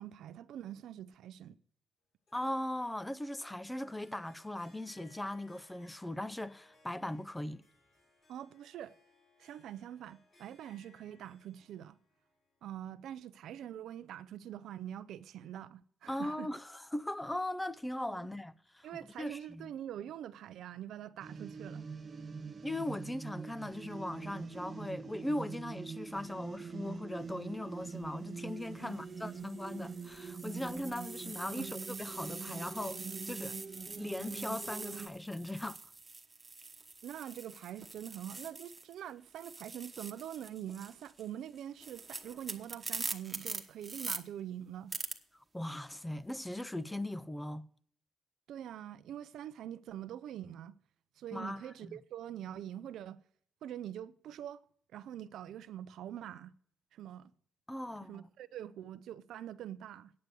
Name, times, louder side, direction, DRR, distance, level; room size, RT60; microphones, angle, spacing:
voice 1, 0.0-1.6 8.3-9.0 9.4-12.0 12.6-16.5 18.1-18.3 18.8-21.8 28.8-29.0 31.5-31.7 37.0-44.9 48.5-50.8 51.2-53.2 53.6-54.6 54.9-56.5 56.9-57.3 58.1-60.1, right 11 dB, 75° right, 0.5 m, -44 dB
Harp, 2.3-13.5, left 3 dB, 50° left, 6.1 m, -67 dB
voice 2, 2.3-7.6 16.1-18.9 19.2-19.7 22.6-33.6 34.0-35.8 45.5-47.7 51.3-52.0 57.7-58.3, left 1 dB, 10° left, 0.4 m, -39 dB
sound 1, 21.2-35.1, right 5 dB, 40° right, 0.8 m, -44 dB
sound 2, 27.8-28.1 28.8-39.0 39.3-44.2 44.9-45.1, right 3 dB, 20° right, 1.2 m, -44 dB
9.5 x 6.8 x 7.7 m
cardioid pair, 90°, 0 cm